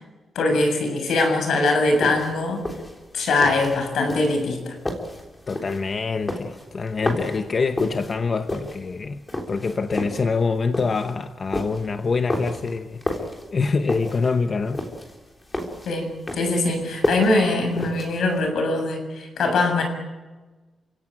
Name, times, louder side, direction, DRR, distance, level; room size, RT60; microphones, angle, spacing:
voice 1, 0.3-2.6 3.1-4.8 15.9-19.8, left 2 dB, 70° left, 7.3 m, -22 dB
sound 1, 1.8-18.5, left 1 dB, 15° left, 3.6 m, -31 dB
voice 2, 5.5-9.2 9.5-14.8, left 4 dB, 30° left, 0.9 m, -25 dB
29.5 x 17.0 x 9.1 m
wide cardioid pair, 180°, 0 cm